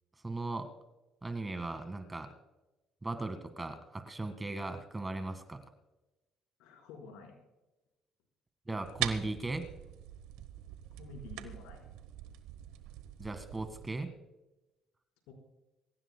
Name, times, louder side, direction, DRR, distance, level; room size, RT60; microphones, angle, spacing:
voice 1, 0.2-0.7 1.2-2.3 3.0-5.6 8.7-9.7 13.2-14.1, right 2 dB, 20° right, 8 dB, 1.8 m, -37 dB
voice 2, 6.6-7.4 11.0-11.8 15.3-15.4, left 4 dB, 85° left, 1 dB, 4.5 m, -49 dB
sound 1, 8.8-13.9, right 13 dB, 85° right, 1.0 m, -42 dB
25.0 x 15.0 x 2.3 m, 1.0 s
supercardioid pair, 80°, 0 cm